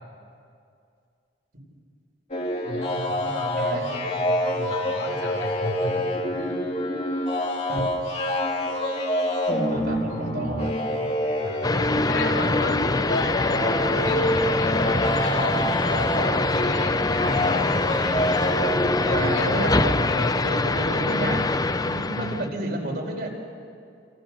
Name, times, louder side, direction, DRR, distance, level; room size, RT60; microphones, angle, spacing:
sound 1, 2.3-19.4, left 1 dB, 35° left, 3.4 m, -27 dB
voice 1, 2.6-6.6 10.1-10.5 11.4-11.7 12.1-15.6 15.9-18.1 19.0-20.4 22.1-22.4, left 2 dB, 90° left, -1 dB, 4.1 m, -33 dB
voice 2, 3.6-3.9 7.7-7.8 9.7-11.1 19.1-21.4 21.7-23.3, right 1 dB, 55° right, 0 dB, 4.9 m, -31 dB
sound 2, 11.6-22.5, left 3 dB, 20° left, 0.6 m, -24 dB
28.0 x 27.5 x 6.6 m, 2.4 s
head